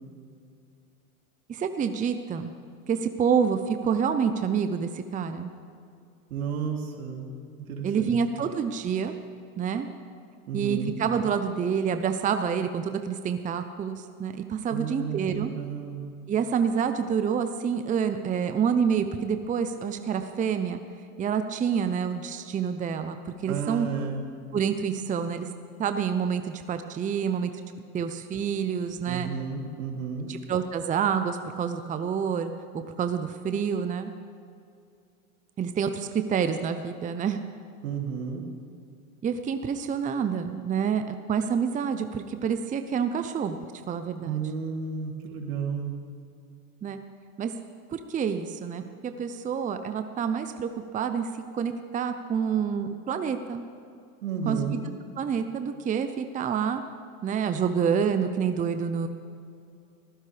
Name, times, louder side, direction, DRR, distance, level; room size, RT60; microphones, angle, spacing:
voice 1, 1.5-2.5 2.9-5.5 7.8-9.1 9.6-9.9 10.5-15.5 16.3-20.8 21.2-23.9 24.5-25.5 25.8-27.5 27.9-29.3 30.3-34.1 35.6-37.4 39.2-43.6 43.9-44.4 46.8-47.0 47.4-47.5 47.9-53.6 54.5-54.8 55.2-56.8 57.2-59.1, right 7 dB, 20° right, 8 dB, 0.7 m, -28 dB
voice 2, 6.3-7.3 7.7-8.2 10.5-10.9 14.7-16.1 23.5-24.2 29.0-30.3 37.8-38.5 44.2-45.9 54.2-54.8, right 6 dB, 75° right, 0 dB, 3.0 m, -32 dB
22.5 x 15.5 x 3.4 m, 2.4 s
hypercardioid pair, 105°, 44 cm